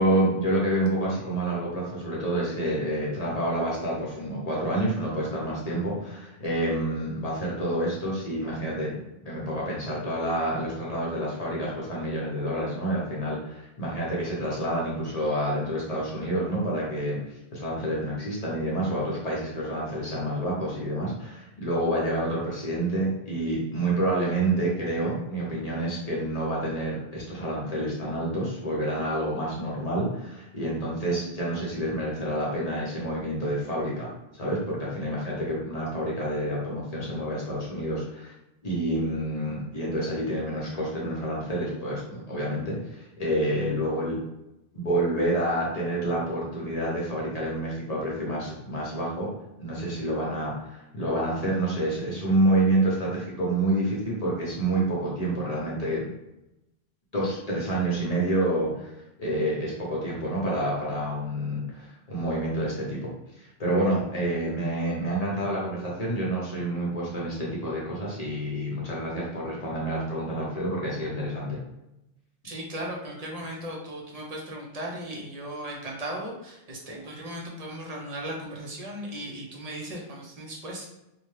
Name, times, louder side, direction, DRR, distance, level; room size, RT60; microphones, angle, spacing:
voice 1, 0.0-9.0 9.2-17.2 17.5-38.3 38.6-44.2 44.7-49.3 49.6-56.1 57.1-71.6, right 1 dB, 40° left, -5 dB, 0.8 m, -28 dB
voice 2, 72.4-80.9, right 1 dB, 45° right, -1 dB, 0.6 m, -37 dB
2.7 x 2.1 x 3.1 m, 0.90 s
omnidirectional pair, 1.0 m